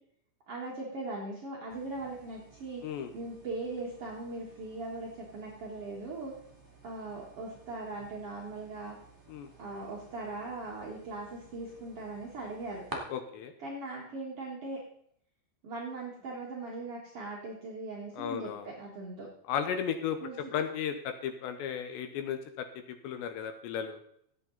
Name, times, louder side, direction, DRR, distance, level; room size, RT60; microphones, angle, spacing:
voice 1, 0.5-2.8 3.1-6.3 6.8-8.9 9.6-12.8 13.6-14.8 15.6-19.3 20.2-20.5, right 2 dB, 65° right, -3 dB, 1.4 m, -40 dB
sound 1, 1.7-13.0, right 1 dB, 15° right, 0.8 m, -52 dB
voice 2, 13.1-13.5 18.2-18.7 19.5-20.2 20.5-24.0, left 8 dB, 80° left, 7 dB, 2.9 m, -35 dB
15.5 x 8.3 x 4.0 m, 0.68 s
omnidirectional pair, 5.4 m